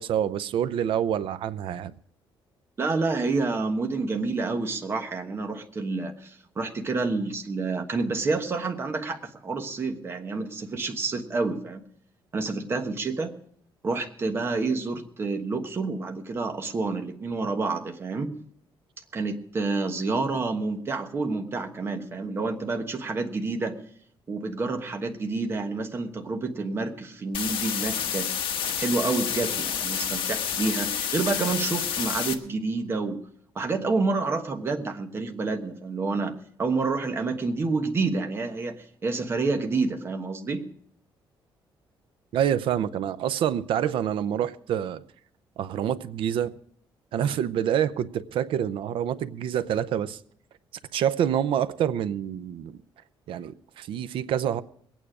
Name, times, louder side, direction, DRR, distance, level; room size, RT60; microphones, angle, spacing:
voice 1, 0.0-1.9 42.3-45.0 45.6-46.5 47.1-50.2 50.9-52.8 53.3-54.6, right 9 dB, 70° right, 0.7 m, -27 dB
voice 2, 2.8-11.8 12.3-13.3 13.8-18.3 19.1-23.8 24.3-28.4 28.8-33.2 33.5-36.3 36.6-40.6, right 3 dB, 25° right, 1.2 m, -28 dB
sound 1, 27.3-32.3, left 8 dB, 70° left, 1.2 m, -29 dB
22.0 x 9.2 x 4.9 m
cardioid pair, 180°, 9 cm